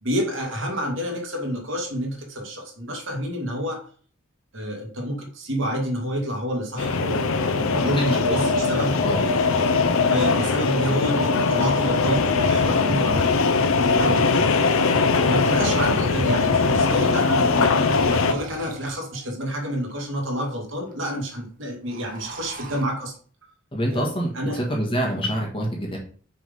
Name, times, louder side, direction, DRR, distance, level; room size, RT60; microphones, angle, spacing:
voice 1, 0.0-3.8 4.5-9.0 10.0-14.5 15.2-23.2 23.9-24.1 24.3-24.6, equal, 60° right, 1 dB, 2.2 m, -29 dB
sound 1, 6.8-18.3, left 4 dB, 75° left, 0.6 m, -21 dB
voice 2, 8.1-8.4 9.0-9.2 10.9-11.0 12.8-13.0 23.7-26.0, equal, 25° left, -1 dB, 1.5 m, -26 dB
sound 2, 16.3-16.4 17.3-19.3 19.9-20.0 20.2-20.3 20.5-20.9 21.2-21.4 21.7-22.9, right 3 dB, 40° right, 1.1 m, -43 dB
6.4 x 3.8 x 5.4 m, 0.43 s
head